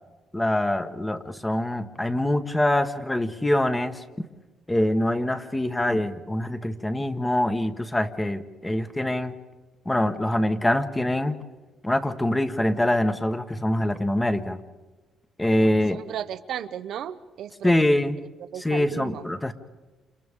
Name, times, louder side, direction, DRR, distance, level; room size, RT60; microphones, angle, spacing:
voice 1, 0.3-4.3 4.7-9.3 9.8-11.4 11.8-14.6 15.4-16.0 17.6-18.2 18.6-19.5, left 1 dB, 15° left, 8 dB, 1.2 m, -24 dB
voice 2, 15.9-17.9 18.5-19.2, right 10 dB, 75° right, 10 dB, 0.7 m, -34 dB
28.5 x 28.0 x 3.7 m, 1.2 s
cardioid pair, 90°, 0 cm